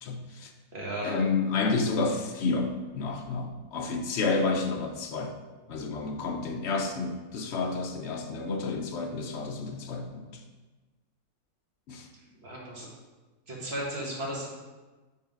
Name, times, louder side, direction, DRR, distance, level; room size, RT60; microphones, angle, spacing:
voice 1, 0.0-0.5 1.0-5.3 5.7-10.4 11.9-12.1, left 4 dB, 65° left, 4 dB, 0.7 m, -30 dB
voice 2, 0.7-1.2 12.4-12.9 13.5-14.5, right 1 dB, 40° right, -4 dB, 1.6 m, -34 dB
5.5 x 3.7 x 5.0 m, 1.2 s
omnidirectional pair, 1.7 m